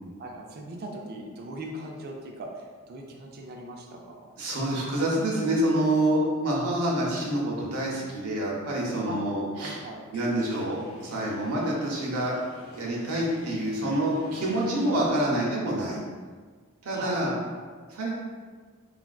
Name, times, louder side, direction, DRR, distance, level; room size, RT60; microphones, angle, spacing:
voice 1, 0.2-4.3 9.1-9.2 9.6-10.0 16.9-17.5, right 1 dB, 45° right, 1 dB, 0.4 m, -40 dB
voice 2, 4.4-9.8 10.1-12.4 12.7-16.0 16.8-17.3 17.9-18.2, right 1 dB, 85° right, -4 dB, 0.6 m, -27 dB
sound 1, 10.0-15.1, left 1 dB, 45° left, 0.7 m, -46 dB
3.3 x 2.4 x 2.2 m, 1.5 s
head